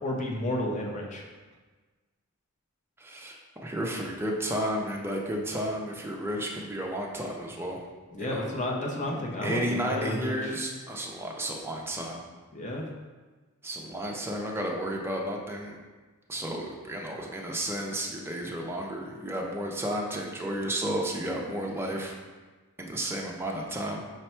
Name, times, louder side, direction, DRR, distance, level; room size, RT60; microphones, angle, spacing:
voice 1, 0.0-1.2 8.1-10.5 12.5-12.9, left 1 dB, 35° left, -1 dB, 0.7 m, -32 dB
voice 2, 3.0-7.8 8.2-8.5 9.1-12.2 13.6-15.8 16.3-22.2 22.8-24.0, right 1 dB, 10° right, -1 dB, 0.5 m, -32 dB
5.1 x 2.2 x 4.3 m, 1.3 s
head